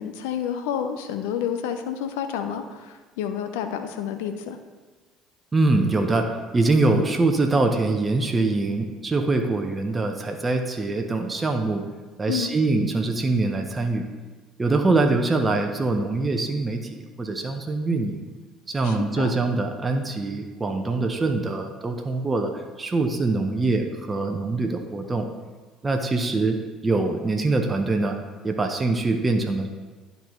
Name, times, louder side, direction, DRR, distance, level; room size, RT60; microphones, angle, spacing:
voice 1, 0.0-4.6 12.3-12.5 18.8-19.3, left 9 dB, 80° left, 7 dB, 0.6 m, -29 dB
voice 2, 5.5-11.8 12.2-14.0 14.6-18.3 18.7-25.2 25.8-26.6 26.8-28.2 28.4-29.7, right 3 dB, 25° right, 4 dB, 0.8 m, -23 dB
11.5 x 4.0 x 3.1 m, 1.3 s
hypercardioid pair, 60°, 0 cm